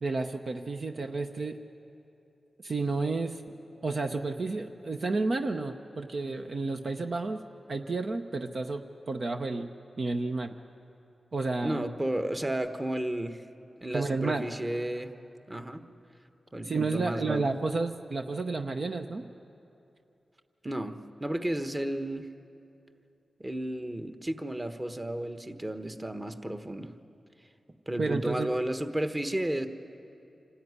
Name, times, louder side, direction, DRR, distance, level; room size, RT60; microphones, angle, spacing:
voice 1, 0.0-1.6 2.6-3.4 3.8-7.4 7.7-9.7 10.0-10.6 11.3-11.8 13.9-14.4 16.6-19.3 28.0-28.5, right 3 dB, 60° right, 5 dB, 0.8 m, -31 dB
voice 2, 11.6-13.4 13.8-15.1 15.5-15.8 16.5-17.5 20.6-20.9 21.2-22.3 23.4-26.9 27.9-29.7, right 1 dB, 25° right, 8 dB, 1.3 m, -32 dB
25.5 x 13.5 x 9.7 m, 2.7 s
cardioid pair, 45°, 0 cm